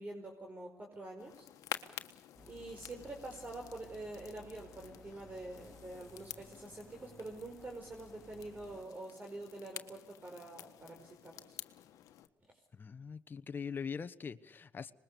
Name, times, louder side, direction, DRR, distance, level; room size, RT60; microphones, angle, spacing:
voice 1, 0.0-1.5 2.5-11.6, right 2 dB, 30° right, 2 dB, 4.8 m, -46 dB
sound 1, 1.2-12.3, left 12 dB, 75° left, 1.5 m, -50 dB
sound 2, 2.3-8.8, left 3 dB, 5° left, 2.8 m, -58 dB
voice 2, 12.7-14.9, left 6 dB, 35° left, 11 dB, 1.2 m, -42 dB
25.0 x 21.0 x 7.0 m, 0.85 s
cardioid pair, 80°, 6 cm